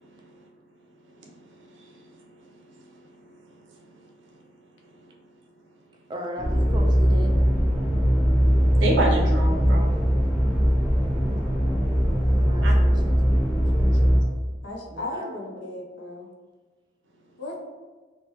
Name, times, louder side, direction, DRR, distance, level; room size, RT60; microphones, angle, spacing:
voice 1, 1.3-2.0 3.2-3.3 5.0-5.1 8.7-9.9 12.6-12.7, right 1 dB, 80° right, 0 dB, 0.6 m, -28 dB
voice 2, 6.1-7.3 12.3-14.3 14.9-15.7, equal, 25° right, 1 dB, 0.3 m, -38 dB
sound 1, 6.4-14.2, equal, ahead, 0.8 m, -20 dB
voice 3, 14.6-16.3 17.4-17.6, left 2 dB, 70° left, 0 dB, 0.5 m, -35 dB
3.0 x 2.1 x 2.9 m, 1.3 s
head